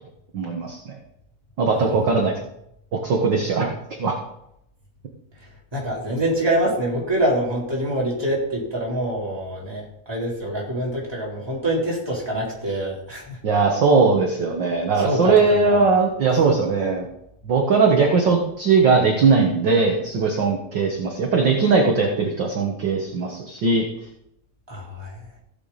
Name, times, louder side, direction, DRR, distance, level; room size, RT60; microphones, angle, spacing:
voice 1, 0.3-1.0 1.6-2.3 2.9-3.7 4.0-4.2 13.4-17.1 17.4-23.8, right 4 dB, 50° right, 1 dB, 1.7 m, -19 dB
voice 2, 5.4-13.4 15.0-15.8 24.7-25.3, right 1 dB, 10° right, -5 dB, 3.5 m, -25 dB
16.0 x 8.4 x 4.2 m, 0.77 s
omnidirectional pair, 3.3 m